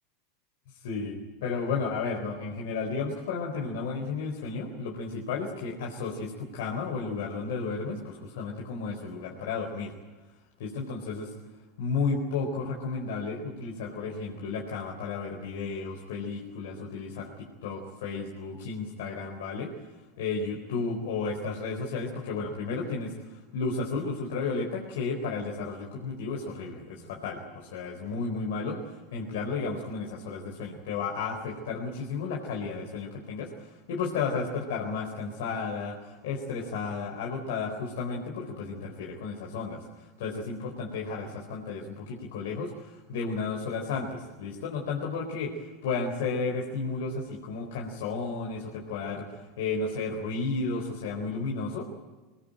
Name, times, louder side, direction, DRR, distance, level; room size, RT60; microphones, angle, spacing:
voice 1, 0.8-9.9 10.6-11.3 11.8-19.7 20.2-23.1 23.5-39.8 40.2-49.3 49.6-51.9, left 4 dB, 70° left, 0 dB, 4.2 m, -33 dB
24.0 x 19.5 x 9.0 m, 1.2 s
hypercardioid pair, 95°, 0 cm